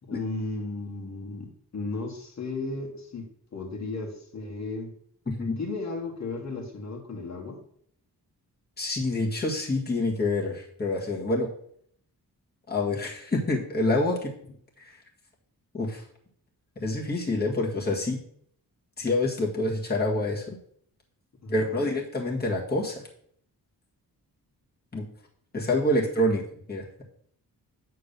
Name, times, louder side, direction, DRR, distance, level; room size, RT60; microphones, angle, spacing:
voice 1, 0.0-4.9 5.6-7.6 21.4-21.9, left 3 dB, 45° left, 0 dB, 1.9 m, -35 dB
voice 2, 8.8-11.5 12.7-14.3 14.8-15.0 15.7-16.0 16.8-18.2 19.0-20.6 21.5-23.0 24.9-25.1 25.5-26.4 26.7-27.0, left 2 dB, 25° left, -2 dB, 1.8 m, -27 dB
8.7 x 3.8 x 6.7 m, 0.63 s
wide cardioid pair, 140°, 38 cm